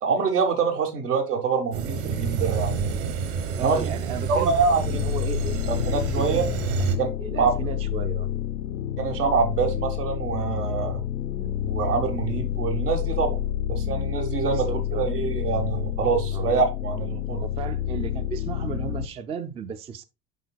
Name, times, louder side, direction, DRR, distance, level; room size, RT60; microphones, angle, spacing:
voice 1, 0.0-3.1 3.6-3.9 4.3-5.0 5.7-6.4 7.0-7.1 7.3-7.5 9.0-11.0 11.7-13.4 13.7-17.4, right 5 dB, 80° right, 1.5 m, -25 dB
sound 1, 1.7-7.0, right 5 dB, 55° right, 1.2 m, -29 dB
voice 2, 3.6-4.5 4.8-5.6 6.2-6.3 7.2-8.3 11.4-11.6 14.5-15.1 16.3-16.5 17.4-20.0, right 6 dB, 15° right, 0.3 m, -35 dB
sound 2, 4.8-19.1, left 11 dB, 75° left, 0.7 m, -29 dB
11.0 x 3.8 x 2.3 m
figure-of-eight pair, 70°, 46 cm